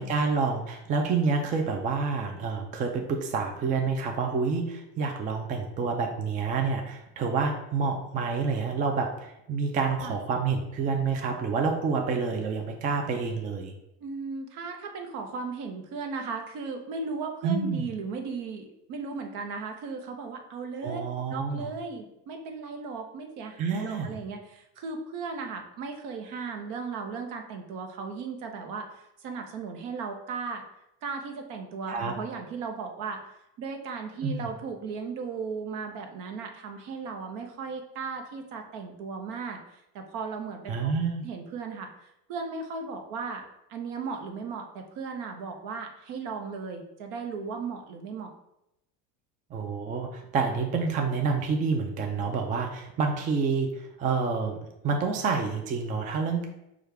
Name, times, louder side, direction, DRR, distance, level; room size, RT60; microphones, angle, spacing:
voice 1, 0.0-13.7 17.4-17.8 20.8-21.7 23.6-24.2 31.9-32.1 34.2-34.5 40.7-41.3 49.5-54.6 54.8-56.4, right 5 dB, 25° right, 3 dB, 0.4 m, -28 dB
voice 2, 14.0-21.0 21.3-30.6 31.0-40.9 41.2-43.4 43.7-48.3, right 4 dB, 65° right, 4 dB, 0.9 m, -36 dB
6.2 x 2.4 x 3.3 m, 0.86 s
cardioid pair, 140°, 34 cm